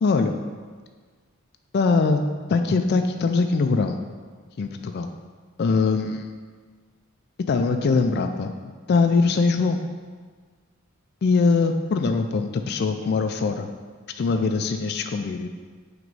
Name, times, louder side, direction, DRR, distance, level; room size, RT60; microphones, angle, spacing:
voice 1, 0.0-0.3 1.7-2.2 2.5-4.0 4.6-5.1 5.6-6.3 7.5-8.5 8.9-9.8 11.2-13.7 14.2-15.5, left 4 dB, 50° left, 6 dB, 0.3 m, -22 dB
6.0 x 3.0 x 5.3 m, 1.5 s
head